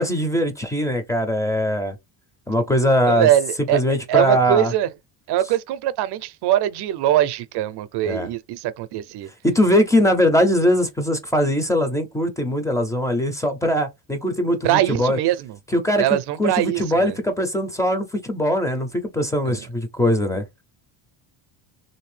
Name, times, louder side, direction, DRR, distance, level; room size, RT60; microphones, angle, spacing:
voice 1, 0.0-2.0 2.5-3.3 3.7-4.7 8.0-8.3 9.4-15.2 15.7-16.1 16.4-20.4, equal, 5° left, 0.4 m, -21 dB
voice 2, 3.0-3.8 4.1-4.9 5.3-9.3 14.6-15.6 16.0-17.2 19.5-19.6, right 12 dB, 55° right, 0.5 m, -22 dB
3.2 x 2.7 x 3.2 m
cardioid pair, 155°, 49 cm